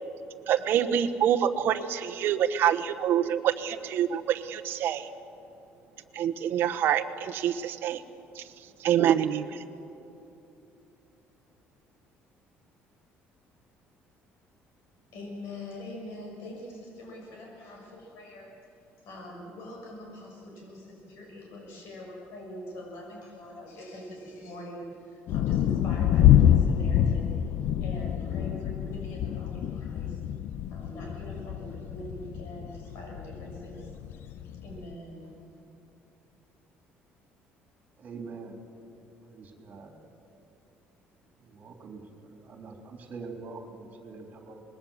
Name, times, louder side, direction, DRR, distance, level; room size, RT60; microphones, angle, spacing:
voice 1, 0.5-5.1 6.1-8.0 8.3-8.4 8.8-9.6, right 9 dB, 55° right, 8 dB, 1.1 m, -26 dB
voice 2, 15.1-18.5 19.0-27.4 27.8-30.2 30.7-33.9 34.3-35.3, left 1 dB, 75° left, -1 dB, 6.6 m, -43 dB
sound 1, 25.3-34.9, left 10 dB, 60° left, 0.7 m, -26 dB
voice 3, 38.0-38.6 39.2-39.9 41.4-44.6, right 4 dB, 40° right, 3 dB, 3.5 m, -44 dB
25.5 x 20.5 x 7.3 m, 2.9 s
cardioid pair, 155°, 4 cm